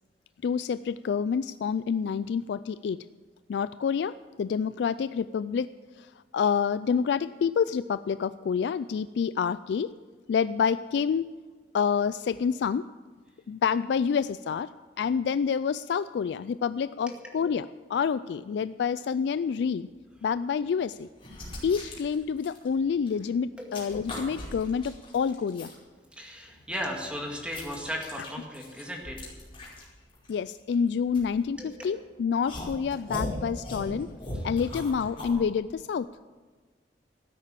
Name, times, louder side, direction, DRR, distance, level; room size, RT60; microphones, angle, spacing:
voice 1, 0.4-3.0 3.5-5.7 6.0-9.9 10.3-11.3 11.7-12.9 13.5-14.7 15.0-19.9 20.2-21.1 21.6-25.7 30.3-34.1 34.4-36.1, left 6 dB, 70° left, 15 dB, 0.3 m, -28 dB
sound 1, 20.1-20.3 20.9-23.2 23.5-25.8 26.3-31.9 32.4-35.4, left 1 dB, 30° left, 5.3 m, -39 dB
voice 2, 26.1-29.3 31.6-31.7 34.3-34.4, equal, 5° right, 0 dB, 2.1 m, -36 dB
13.5 x 9.8 x 7.5 m, 1.4 s
head